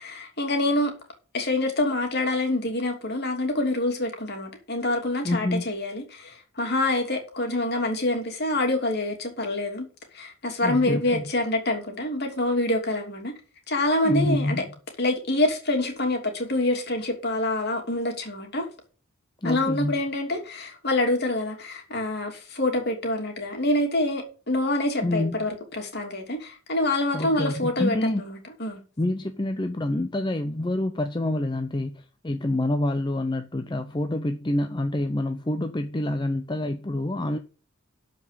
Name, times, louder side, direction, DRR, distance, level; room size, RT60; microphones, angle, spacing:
voice 1, 0.0-0.9 1.3-9.9 10.1-13.3 13.7-14.6 15.0-18.7 19.4-28.8, left 2 dB, 50° left, 3.0 m, -26 dB
voice 2, 5.2-5.7 10.6-11.3 14.0-14.8 19.4-20.0 25.0-25.4 27.1-28.2 29.0-37.4, left 1 dB, 20° left, 0.6 m, -27 dB
12.5 x 5.3 x 6.8 m
head